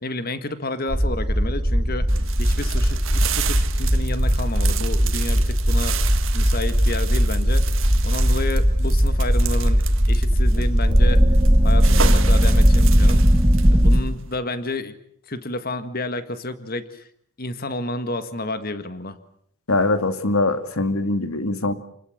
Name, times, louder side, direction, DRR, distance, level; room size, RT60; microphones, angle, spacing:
voice 1, 0.0-6.0 6.3-7.7 8.0-11.2 11.6-13.3 13.7-15.0 15.3-17.1 17.4-19.2, left 2 dB, 40° left, 11 dB, 1.8 m, -30 dB
sound 1, 0.9-14.0, equal, 20° right, 2.0 m, -18 dB
sound 2, 2.1-14.4, right 8 dB, 60° right, 1.8 m, -33 dB
voice 2, 19.7-21.7, left 2 dB, 75° left, 10 dB, 2.3 m, -22 dB
29.0 x 20.0 x 8.0 m, 0.67 s
head